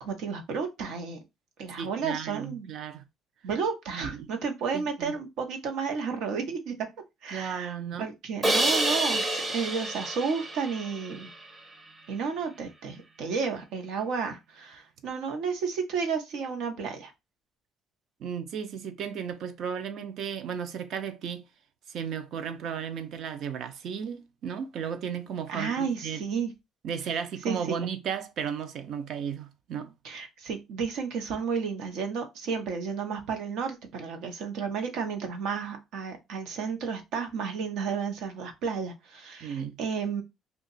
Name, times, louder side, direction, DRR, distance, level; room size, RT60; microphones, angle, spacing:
voice 1, 0.0-1.2 1.6-2.7 3.4-6.7 7.2-7.7 8.0-11.3 12.1-17.1 25.5-26.5 27.1-27.2 27.4-27.8 30.0-40.2, right 5 dB, 85° right, 1.0 m, -32 dB
voice 2, 1.8-3.0 3.9-4.3 4.7-5.1 7.3-8.1 18.2-21.4 21.9-26.2 26.8-29.9 39.4-39.8, right 7 dB, 65° right, 0.6 m, -34 dB
Crash cymbal, 8.4-11.5, right 1 dB, 25° right, 0.7 m, -28 dB
2.9 x 2.4 x 4.0 m
cardioid pair, 135°, 0 cm